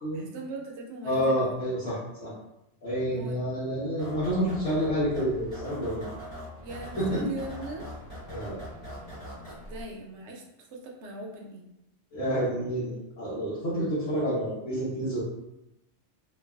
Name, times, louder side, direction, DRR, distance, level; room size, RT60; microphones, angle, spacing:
voice 1, 0.1-1.5 3.1-3.4 6.6-7.8 9.4-10.4 10.7-11.6, right 2 dB, 70° right, 0 dB, 0.9 m, -40 dB
voice 2, 1.0-2.3 2.8-6.0 7.0-7.3 8.3-8.6 12.1-15.2, equal, 85° left, -10 dB, 1.3 m, -29 dB
sound 1, 4.0-9.8, equal, 55° left, 1.6 m, -42 dB
3.2 x 2.3 x 2.2 m, 0.88 s
omnidirectional pair, 1.3 m